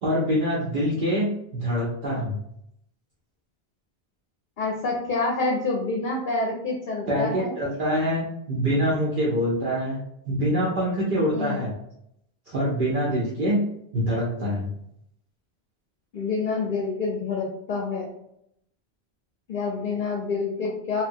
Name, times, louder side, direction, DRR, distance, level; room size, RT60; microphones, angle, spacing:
voice 1, 0.0-2.4 7.1-10.0 10.3-11.7 12.5-13.6 13.9-14.7, equal, 55° right, -6 dB, 0.8 m, -25 dB
voice 2, 4.6-7.5 11.3-11.7 16.1-18.1 19.5-21.0, left 3 dB, 55° left, -1 dB, 0.7 m, -27 dB
3.0 x 2.2 x 2.6 m, 0.74 s
omnidirectional pair, 1.1 m